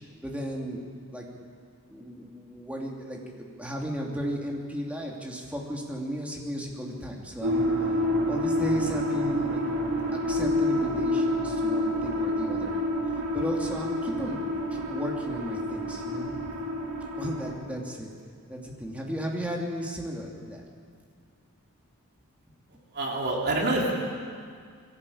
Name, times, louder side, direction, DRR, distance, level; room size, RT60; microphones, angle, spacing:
voice 1, 0.2-0.8 1.1-1.3 1.9-7.7 8.3-9.6 10.2-12.8 13.3-14.4 14.7-16.5 17.2-18.1 18.5-20.6, equal, 5° right, -1 dB, 2.9 m, -35 dB
sound 1, 7.4-17.5, equal, 80° right, 3.9 m, -28 dB
voice 2, 22.9-24.1, right 2 dB, 50° right, -2 dB, 3.7 m, -26 dB
22.0 x 17.0 x 8.7 m, 2.1 s
head